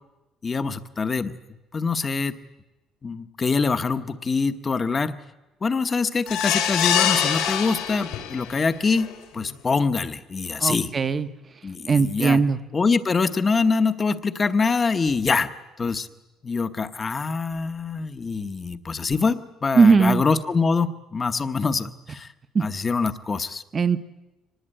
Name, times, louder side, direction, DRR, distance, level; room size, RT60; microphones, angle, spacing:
voice 1, 0.4-1.4 1.7-2.4 3.0-5.2 5.6-10.9 11.6-12.4 12.7-15.5 15.8-16.1 16.4-22.3 22.6-23.6, left 4 dB, 20° left, 11 dB, 0.9 m, -24 dB
sound 1, 6.3-8.5 9.0-9.1 9.4-9.5, left 10 dB, 80° left, 3.4 m, -24 dB
voice 2, 10.6-11.3 11.9-12.6 19.8-20.2 22.5-22.6 23.7-24.0, right 5 dB, 25° right, 12 dB, 0.8 m, -19 dB
24.5 x 19.5 x 8.9 m, 1.0 s
cardioid pair, 170°, 0 cm